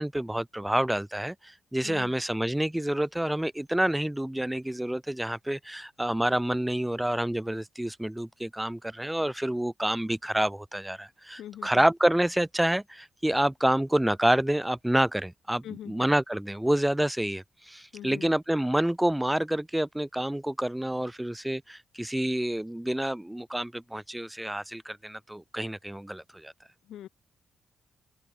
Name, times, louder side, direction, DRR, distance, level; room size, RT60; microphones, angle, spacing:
voice 1, 0.0-26.5, right 1 dB, 5° right, 0.9 m, -28 dB
voice 2, 11.4-11.8 15.6-16.1 17.9-18.3 26.8-27.1, left 11 dB, 85° left, 2.1 m, -42 dB
open air
cardioid pair, 80°, 0 cm